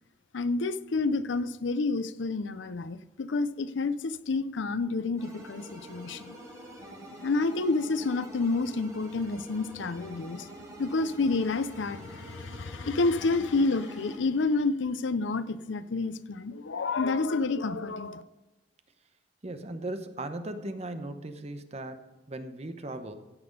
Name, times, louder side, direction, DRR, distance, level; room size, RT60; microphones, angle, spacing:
voice 1, 0.3-6.4 7.2-10.5 10.8-18.2, left 3 dB, 85° left, 14 dB, 0.6 m, -29 dB
sound 1, 5.2-14.2, right 1 dB, 20° right, 3.8 m, -46 dB
voice 2, 19.4-23.2, right 2 dB, 35° right, 8 dB, 0.9 m, -38 dB
16.0 x 6.0 x 5.3 m, 1.1 s
head